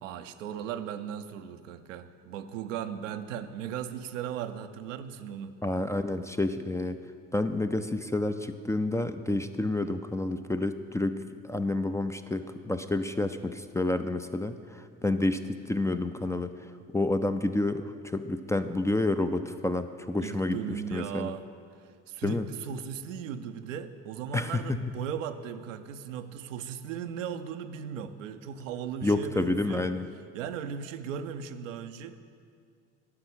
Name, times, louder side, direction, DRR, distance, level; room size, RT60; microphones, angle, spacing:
voice 1, 0.0-5.5 20.2-21.4 22.1-29.9 30.3-32.2, right 8 dB, 80° right, 9 dB, 0.6 m, -37 dB
voice 2, 5.6-7.0 7.3-16.5 16.9-21.4 22.2-22.5 24.3-24.8 29.0-30.1, left 2 dB, 10° left, 9 dB, 0.4 m, -29 dB
11.5 x 5.7 x 7.2 m, 2.2 s
hypercardioid pair, 60°, 37 cm